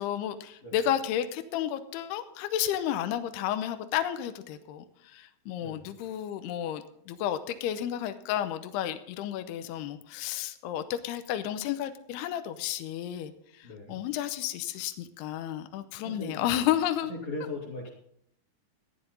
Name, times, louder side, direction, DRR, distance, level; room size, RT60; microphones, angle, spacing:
voice 1, 0.0-17.1, left 11 dB, 80° left, 10 dB, 2.6 m, -32 dB
voice 2, 13.6-14.0 16.0-16.6 17.1-17.9, left 2 dB, 40° left, -5 dB, 3.5 m, -38 dB
14.0 x 11.0 x 4.1 m, 0.72 s
omnidirectional pair, 5.1 m